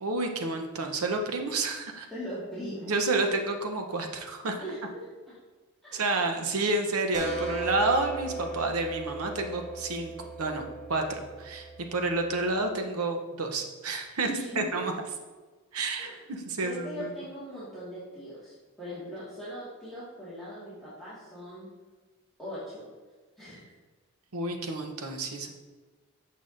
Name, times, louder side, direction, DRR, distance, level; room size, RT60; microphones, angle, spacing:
voice 1, 0.0-2.1 2.9-4.6 5.9-10.1 10.4-14.3 14.6-14.9 15.7-17.1 24.3-25.5, right 3 dB, 75° right, 4 dB, 0.8 m, -30 dB
voice 2, 2.1-3.0 4.6-5.4 5.8-6.1 14.2-14.8 16.0-16.2 16.6-21.7 22.4-22.8 23.4-23.7, equal, ahead, -13 dB, 1.8 m, -40 dB
sound 1, 7.1-12.6, right 4 dB, 35° right, 1.0 m, -37 dB
8.4 x 5.5 x 2.6 m, 1.3 s
head